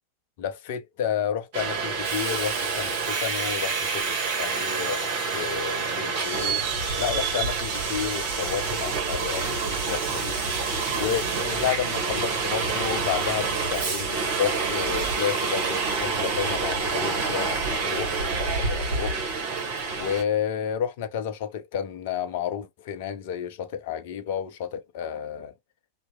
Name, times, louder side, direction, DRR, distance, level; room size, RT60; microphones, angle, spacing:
voice 1, 0.4-6.6 7.0-10.3 10.9-19.2 20.0-25.5, left 9 dB, 50° left, 0.5 m, -31 dB
Subway metro underground, 1.5-20.2, right 4 dB, 50° right, 1.0 m, -27 dB
2.7 x 2.1 x 2.2 m
figure-of-eight pair, 90°, 0 cm